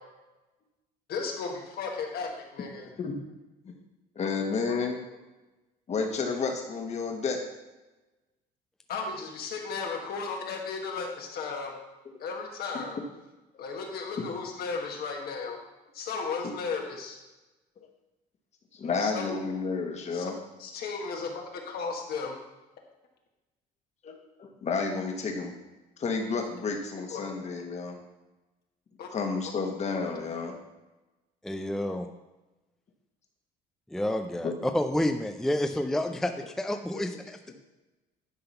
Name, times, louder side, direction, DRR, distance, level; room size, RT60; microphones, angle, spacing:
voice 1, 1.1-2.9 4.7-4.8 8.9-11.7 12.2-13.0 13.6-15.6 15.9-17.2 19.0-19.4 20.1-20.3 20.6-22.4 27.1-27.2 29.0-29.1, left 4 dB, 65° left, 1 dB, 1.6 m, -35 dB
voice 2, 4.1-5.0 5.9-7.4 16.4-16.5 18.7-20.4 24.0-24.1 24.4-25.5 26.0-28.0 29.1-30.6 34.4-34.5 36.9-37.1, left 4 dB, 40° left, 3 dB, 1.5 m, -31 dB
voice 3, 31.4-32.1 33.9-37.5, left 1 dB, ahead, 6 dB, 0.4 m, -29 dB
10.5 x 3.8 x 5.7 m, 1.1 s
cardioid pair, 110°, 17 cm